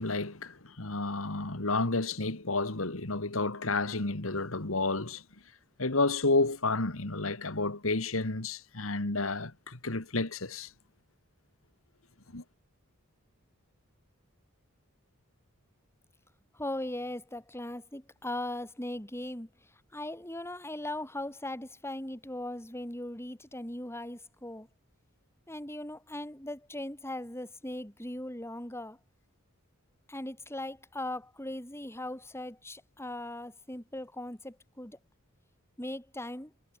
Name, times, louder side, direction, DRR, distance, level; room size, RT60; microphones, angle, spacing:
voice 1, 0.0-5.2 5.8-10.7 12.3-12.4, left 3 dB, 70° left, 2.2 m, -31 dB
voice 2, 16.5-19.5 19.9-24.7 25.5-29.0 30.1-35.0 35.8-36.5, left 1 dB, 10° left, 6.9 m, -39 dB
head